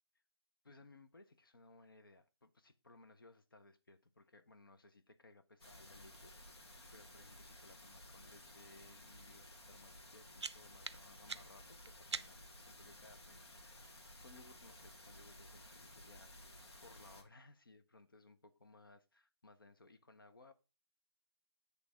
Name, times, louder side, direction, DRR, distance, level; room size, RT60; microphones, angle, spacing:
voice 1, 0.6-13.9 14.2-20.5, left 2 dB, 50° left, 0.7 m, -62 dB
sound 1, 5.6-17.2, left 1 dB, 65° left, 1.7 m, -56 dB
sound 2, 10.4-12.6, right 4 dB, 70° right, 0.5 m, -47 dB
8.4 x 3.4 x 4.8 m
figure-of-eight pair, 175°, 15 cm